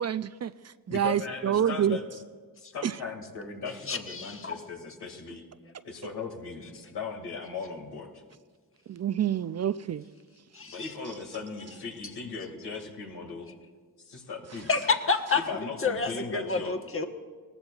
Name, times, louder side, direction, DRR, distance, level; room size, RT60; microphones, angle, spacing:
voice 1, 0.0-2.0 2.8-3.0 8.9-10.1, right 9 dB, 45° right, 14 dB, 0.4 m, -28 dB
voice 2, 0.9-2.0 2.6-5.4 5.8-8.2 10.6-13.5 14.1-14.8 15.3-16.7, left 5 dB, 85° left, 1 dB, 2.3 m, -38 dB
voice 3, 3.9-4.5 10.5-10.9 14.7-15.4 15.8-17.1, left 4 dB, 35° left, 5 dB, 1.3 m, -28 dB
19.0 x 14.0 x 2.4 m, 1.5 s
cardioid pair, 55°, 38 cm